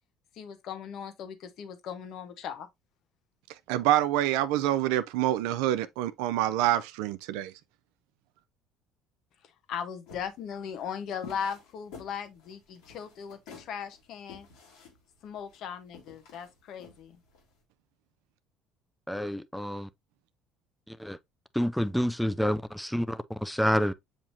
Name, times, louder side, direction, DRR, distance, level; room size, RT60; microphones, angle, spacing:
voice 1, 0.3-2.7 9.4-14.5 15.2-17.2, left 7 dB, 65° left, 0.9 m, -38 dB
voice 2, 3.7-7.5, right 13 dB, 80° right, 0.4 m, -26 dB
sound 1, 10.1-17.5, left 6 dB, 80° left, 1.7 m, -50 dB
voice 3, 19.1-19.9 20.9-21.2 21.5-23.9, equal, ahead, 0.4 m, -28 dB
7.3 x 2.8 x 2.6 m
supercardioid pair, 80°, 0 cm